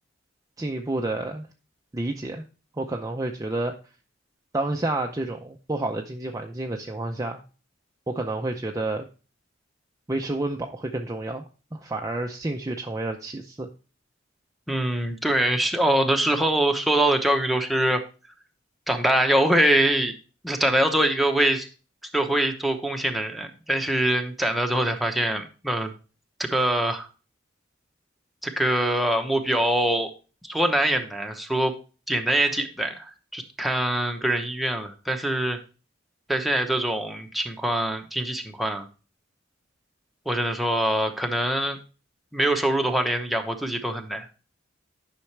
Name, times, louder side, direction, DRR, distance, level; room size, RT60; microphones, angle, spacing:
voice 1, 0.6-1.5 1.9-2.4 2.7-3.8 4.5-7.4 8.1-9.1 10.1-11.4 11.7-13.7, right 2 dB, 20° right, 2 dB, 0.6 m, -29 dB
voice 2, 14.7-18.0 18.9-20.1 20.4-21.7 22.1-25.9 26.4-27.1 28.4-30.1 30.4-31.7 32.1-35.6 36.3-38.9 40.2-41.8 42.3-44.3, right 1 dB, ahead, 3 dB, 0.9 m, -24 dB
10.0 x 5.8 x 3.3 m, 0.35 s
head